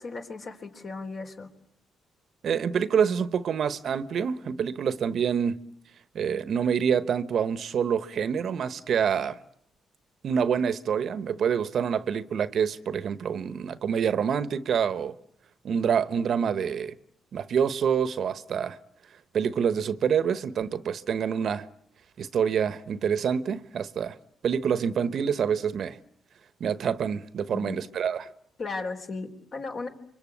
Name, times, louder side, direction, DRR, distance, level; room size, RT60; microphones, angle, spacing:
voice 1, 0.0-1.5 27.5-27.8 28.6-29.9, left 3 dB, 50° left, 3.9 m, -35 dB
voice 2, 2.4-5.6 6.1-9.4 10.2-15.1 15.6-16.9 17.3-18.8 19.3-21.7 22.2-24.2 24.4-26.0 26.6-28.3, right 7 dB, 60° right, 1.1 m, -26 dB
28.0 x 24.5 x 8.6 m
cardioid pair, 90°, 0 cm